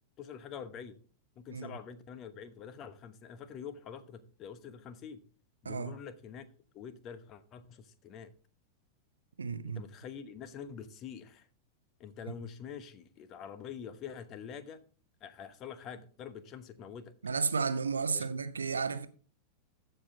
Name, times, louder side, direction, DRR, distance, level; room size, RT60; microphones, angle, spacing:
voice 1, 0.2-1.0 1.4-5.2 5.6-6.5 6.7-8.3 9.7-11.5 12.0-14.8 15.2-17.1 18.1-18.3, left 7 dB, 35° left, 0.9 m, -46 dB
voice 2, 5.6-6.0 9.4-9.8 12.3-12.4 17.2-19.1, right 5 dB, 75° right, 0.7 m, -33 dB
14.5 x 5.5 x 3.6 m
figure-of-eight pair, 90°, 0 cm